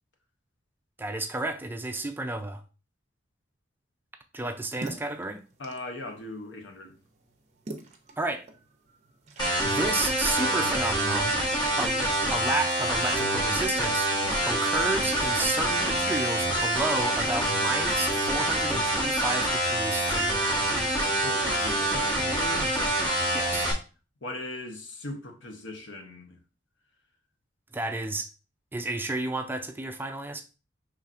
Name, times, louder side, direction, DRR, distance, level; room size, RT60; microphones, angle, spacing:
voice 1, 1.0-2.6 4.3-5.4 8.2-8.4 9.4-11.3 11.8-12.0 12.3-14.1 14.4-20.6 23.3-23.7 27.7-28.3 28.7-30.4, right 2 dB, 10° right, 0.3 m, -32 dB
sound 1, 4.3-9.5, right 2 dB, 40° right, 0.7 m, -45 dB
voice 2, 5.6-7.0 21.2-22.7 24.2-26.4, left 1 dB, 70° left, 0.8 m, -39 dB
sound 2, 9.4-23.7, right 1 dB, 25° left, 1.2 m, -26 dB
5.6 x 3.2 x 2.5 m
head